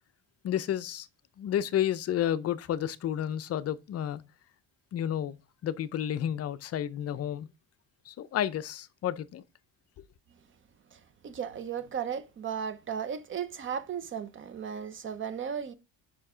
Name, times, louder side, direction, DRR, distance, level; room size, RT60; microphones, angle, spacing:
voice 1, 0.4-1.1 1.4-4.2 4.9-5.4 5.6-7.5 8.1-9.4, left 10 dB, 40° left, 0.5 m, -31 dB
voice 2, 11.2-15.7, right 7 dB, 30° right, 0.7 m, -35 dB
5.7 x 4.6 x 4.9 m
cardioid pair, 145°, 39 cm